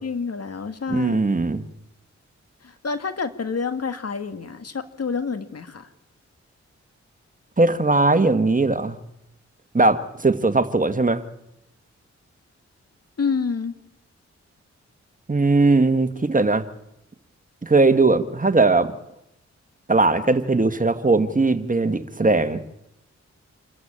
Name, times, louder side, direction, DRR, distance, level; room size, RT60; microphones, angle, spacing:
voice 1, 0.0-1.3 2.6-5.9 13.2-13.8, left 5 dB, 55° left, 9 dB, 1.9 m, -28 dB
voice 2, 0.9-1.6 7.6-9.0 9.7-11.2 15.3-16.6 17.6-18.9 19.9-22.6, right 3 dB, 30° right, 10 dB, 1.6 m, -19 dB
27.0 x 14.5 x 8.9 m, 0.86 s
cardioid pair, 50°, 29 cm